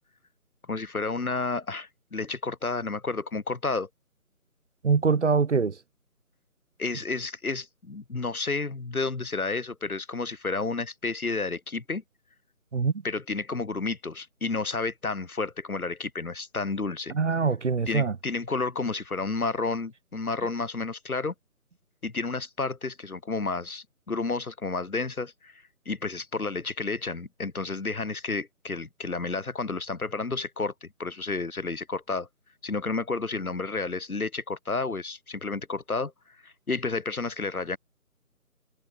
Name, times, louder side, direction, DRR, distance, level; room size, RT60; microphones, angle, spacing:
voice 1, 0.7-3.9 6.8-12.0 13.0-17.1 17.9-21.3 22.0-32.3 32.6-36.1 36.4-37.8, left 3 dB, 70° left, 3.6 m, -31 dB
voice 2, 4.8-5.8 12.7-12.9 17.1-18.1, right 5 dB, 50° right, 0.7 m, -23 dB
figure-of-eight pair, 160°, 45 cm